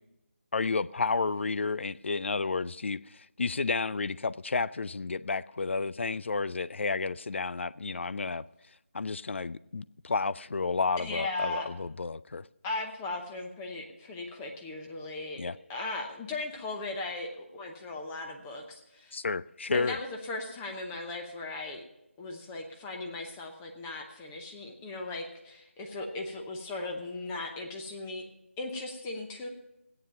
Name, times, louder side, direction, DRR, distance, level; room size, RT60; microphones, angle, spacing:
voice 1, 0.5-8.4 8.9-12.4 15.4-15.6 19.1-20.0, left 4 dB, 60° left, 0.4 m, -31 dB
voice 2, 11.0-11.7 12.6-15.4 15.7-19.2 19.7-21.8 22.2-28.2 28.6-29.5, left 2 dB, 10° left, 0.8 m, -37 dB
14.0 x 9.4 x 5.6 m
figure-of-eight pair, 170°, 7 cm